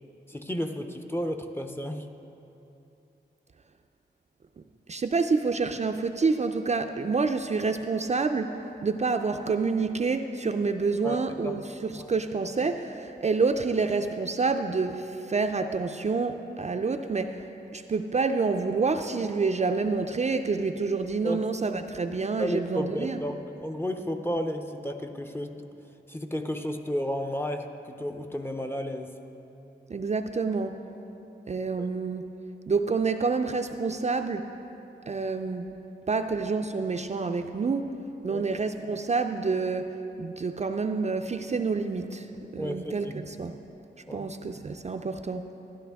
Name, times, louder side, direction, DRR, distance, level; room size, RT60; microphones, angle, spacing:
voice 1, 0.3-2.1 11.0-11.2 11.4-11.5 12.0-12.1 21.2-21.4 22.4-25.6 26.1-29.2 31.8-31.9 38.3-38.5 42.6-43.1 44.1-44.3, equal, 10° left, 5 dB, 0.6 m, -32 dB
voice 2, 4.9-17.5 17.7-23.2 29.9-30.8 31.5-32.2 32.7-34.5 35.1-35.7 36.1-38.0 38.2-42.3 42.5-43.6 44.1-45.5, right 4 dB, 40° right, 6 dB, 0.4 m, -28 dB
12.5 x 12.0 x 3.5 m, 3.0 s
wide cardioid pair, 100°, 19 cm